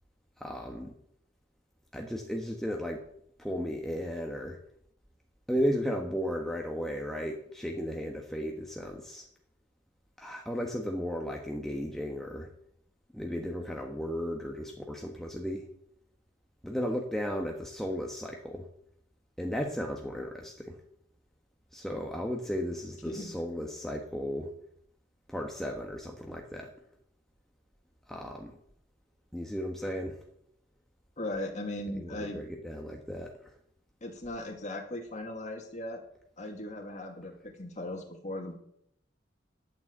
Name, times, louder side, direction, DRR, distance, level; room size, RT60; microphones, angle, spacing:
voice 1, 0.4-0.9 1.9-3.0 3.4-4.6 5.5-9.3 10.2-12.5 13.1-15.7 16.6-18.7 19.4-20.8 21.7-24.5 25.3-26.7 28.1-28.6 29.3-30.2 31.9-33.5, equal, ahead, 0 dB, 1.3 m, -35 dB
voice 2, 31.2-32.4 34.0-36.0 36.4-38.6, left 1 dB, 40° left, 2 dB, 2.2 m, -38 dB
12.0 x 9.2 x 7.9 m, 0.70 s
head